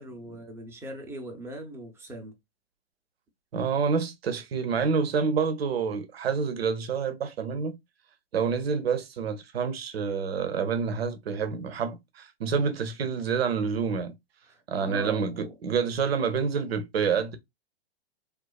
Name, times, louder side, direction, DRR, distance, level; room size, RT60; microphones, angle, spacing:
voice 1, 0.0-2.3 14.5-15.5, right 1 dB, 10° right, 0.6 m, -40 dB
voice 2, 3.5-7.8 8.3-14.1 14.7-17.4, right 6 dB, 75° right, 0.6 m, -28 dB
2.4 x 2.3 x 2.2 m
hypercardioid pair, 110°, 31 cm